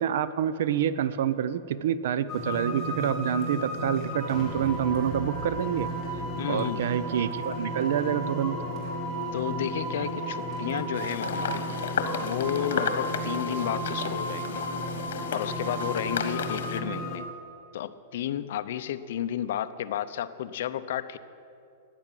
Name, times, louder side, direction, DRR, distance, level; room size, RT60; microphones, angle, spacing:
voice 1, 0.0-5.9 6.5-8.6, right 9 dB, 60° right, 16 dB, 0.6 m, -27 dB
sound 1, 2.3-17.2, right 1 dB, 5° right, 2.7 m, -33 dB
voice 2, 6.4-6.9 9.3-11.7 12.2-14.7 15.3-17.3 17.7-21.2, left 11 dB, 60° left, 10 dB, 0.7 m, -32 dB
sound 2, 10.9-16.8, left 7 dB, 75° left, 1.5 m, -34 dB
14.0 x 9.9 x 9.1 m, 2.6 s
supercardioid pair, 170°, 0 cm